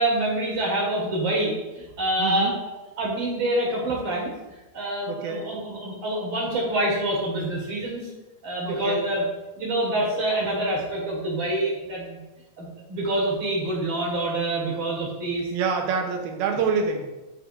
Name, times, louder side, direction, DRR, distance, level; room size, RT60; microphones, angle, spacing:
voice 1, 0.0-2.6 3.0-4.3 4.7-8.1 8.4-9.2 9.5-12.2 12.6-15.5, right 1 dB, 45° right, -4 dB, 1.7 m, -26 dB
voice 2, 2.2-2.6 5.1-5.4 8.6-9.0 15.5-17.1, right 5 dB, 85° right, 3 dB, 2.7 m, -26 dB
11.0 x 4.8 x 2.5 m, 1.1 s
omnidirectional pair, 4.4 m